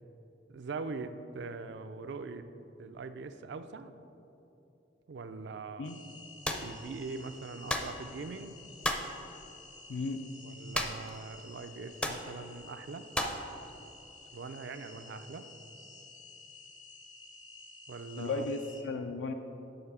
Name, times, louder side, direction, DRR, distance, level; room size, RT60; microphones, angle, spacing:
voice 1, 0.5-2.5 2.8-3.9 5.1-5.9 6.6-8.6 10.4-13.1 14.3-15.4 17.9-18.4, right 4 dB, 70° right, 10 dB, 0.4 m, -42 dB
sound 1, 5.8-18.8, left 2 dB, 45° left, 0.7 m, -52 dB
sound 2, 6.4-6.7 7.7-8.0 8.8-9.1 10.7-11.1 11.4-11.5 12.0-12.3 13.1-13.4, left 1 dB, 5° left, 0.5 m, -32 dB
voice 2, 18.2-19.3, left 4 dB, 85° left, 6 dB, 0.4 m, -35 dB
6.8 x 5.9 x 5.5 m, 2.9 s
head